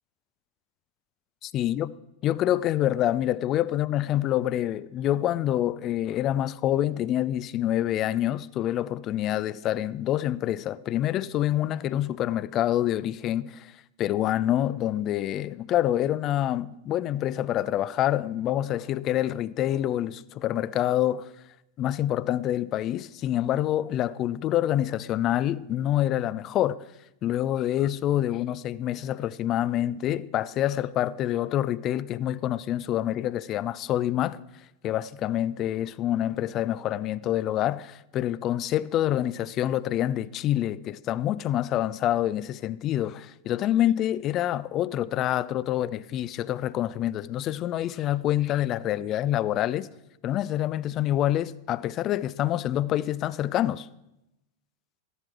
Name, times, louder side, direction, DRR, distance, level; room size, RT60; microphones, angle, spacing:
voice 1, 1.4-1.9 2.2-13.7 14.0-21.3 21.8-26.8 27.2-34.4 34.8-49.9 50.2-53.9, left 12 dB, 35° left, 0.4 m, -26 dB
14.5 x 11.0 x 4.7 m
figure-of-eight pair, 90°, 0 cm